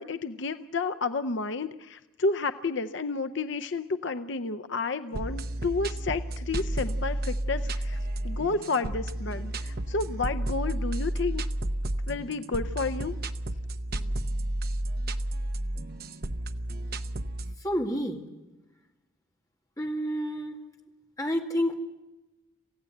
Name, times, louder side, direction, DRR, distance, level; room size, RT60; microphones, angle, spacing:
voice 1, 0.0-8.0 8.2-11.4 12.1-13.2, left 3 dB, 60° left, 11 dB, 0.6 m, -31 dB
sound 1, 5.1-17.6, right 1 dB, 45° right, 0.8 m, -32 dB
voice 2, 17.6-18.2 19.8-20.6 21.2-21.7, equal, 15° left, 2 dB, 2.1 m, -29 dB
27.5 x 16.0 x 7.9 m, 1.1 s
head